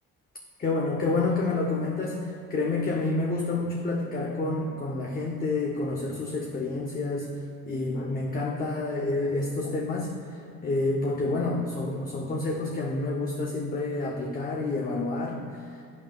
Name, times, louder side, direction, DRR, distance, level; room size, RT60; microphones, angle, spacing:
voice 1, 0.6-7.3 7.7-10.2 10.6-15.5, left 2 dB, 30° left, -1 dB, 0.6 m, -28 dB
8.9 x 8.2 x 2.2 m, 2.5 s
cardioid pair, 90°, 30 cm